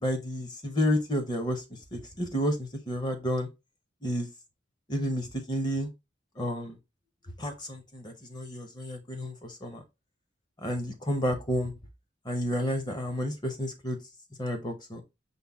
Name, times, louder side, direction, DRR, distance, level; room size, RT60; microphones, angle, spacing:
voice 1, 0.0-1.6 1.9-3.5 4.0-4.3 4.9-5.9 6.4-6.8 7.4-9.8 10.6-11.7 12.2-14.0 14.4-15.0, equal, 25° left, 0.7 m, -30 dB
5.4 x 2.2 x 3.5 m
head